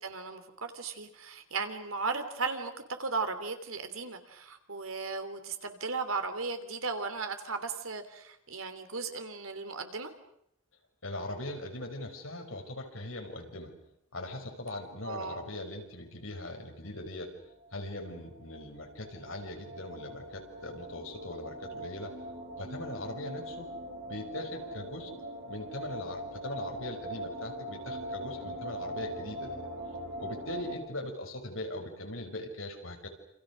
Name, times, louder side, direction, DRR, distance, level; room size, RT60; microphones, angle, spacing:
voice 1, 0.0-2.7 3.0-10.1 15.0-15.4, right 4 dB, 90° right, 8 dB, 3.3 m, -36 dB
voice 2, 11.0-13.7 14.1-17.3 17.7-22.1 22.6-23.7 24.1-25.1 25.5-29.7 30.2-33.1, left 1 dB, 75° left, 3 dB, 5.5 m, -40 dB
sound 1, 17.6-30.7, right 1 dB, 55° right, 7.5 m, -41 dB
28.5 x 27.5 x 6.4 m, 0.77 s
head